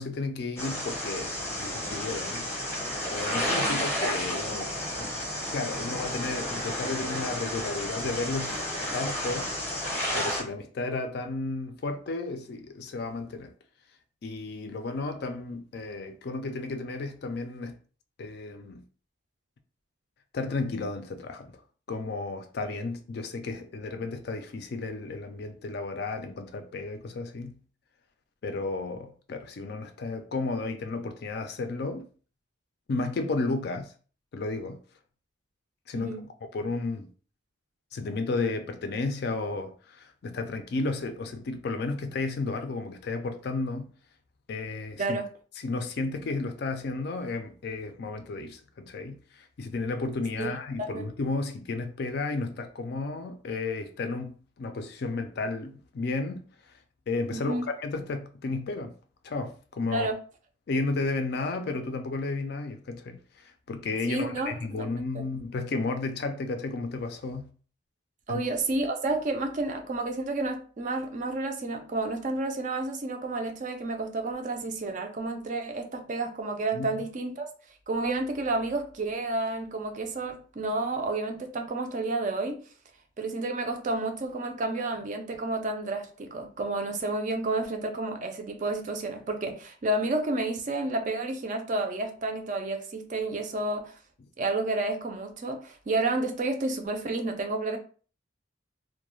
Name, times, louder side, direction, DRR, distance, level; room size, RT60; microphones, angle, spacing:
voice 1, 0.0-2.5 3.1-4.7 5.0-5.2 5.5-8.7 8.9-9.5 10.1-13.5 14.2-17.8 18.2-18.8 20.3-21.6 21.9-27.6 28.4-32.0 32.9-33.9 34.3-34.8 35.9-36.1 36.5-37.1 37.9-43.9 44.5-45.2 45.6-56.4 57.1-58.9 59.2-60.1 60.7-67.5 68.3-68.4 76.7-76.9, left 3 dB, 55° left, 0.3 m, -33 dB
sound 1, 0.6-10.4, equal, 10° left, 0.7 m, -31 dB
voice 2, 57.3-57.7 59.9-60.2 64.1-64.8 65.1-65.2 68.3-77.5 77.9-82.6 83.2-94.0 94.4-97.8, right 2 dB, 40° right, 0.4 m, -30 dB
2.3 x 2.1 x 3.0 m
head